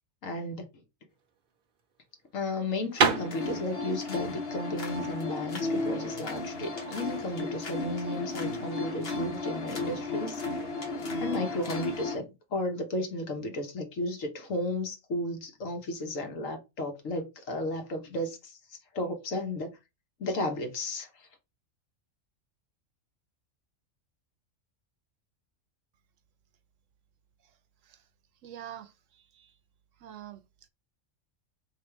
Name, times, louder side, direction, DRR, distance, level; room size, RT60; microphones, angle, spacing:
voice 1, 0.2-0.7 2.3-10.4 11.2-18.6 18.9-19.8 20.2-21.3, left 1 dB, 75° left, 1.4 m, -34 dB
sound 1, 1.1-6.7, right 6 dB, 50° right, 0.8 m, -31 dB
sound 2, 3.1-12.2, left 3 dB, 50° left, 1.3 m, -34 dB
voice 2, 28.4-29.5 30.0-30.4, right 11 dB, 75° right, 1.0 m, -46 dB
3.3 x 3.0 x 4.5 m
omnidirectional pair, 1.4 m